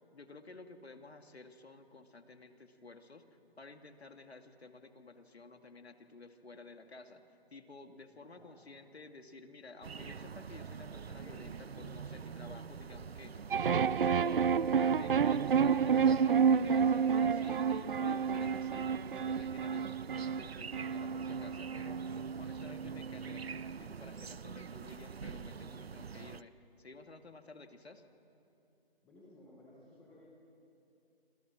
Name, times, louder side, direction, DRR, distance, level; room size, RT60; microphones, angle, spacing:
voice 1, 0.0-3.3 3.6-7.2 7.5-13.3 13.6-14.5 14.7-22.0 22.4-26.5 26.8-28.0, left 3 dB, 85° left, 6 dB, 2.3 m, -53 dB
voice 2, 8.3-8.7 29.0-30.2, left 1 dB, ahead, -9 dB, 0.8 m, -58 dB
sound 1, 9.8-26.4, right 6 dB, 75° right, 0.9 m, -46 dB
sound 2, 13.5-23.8, right 6 dB, 60° right, 0.5 m, -30 dB
29.5 x 26.5 x 6.2 m, 2.8 s
hypercardioid pair, 170°, 31 cm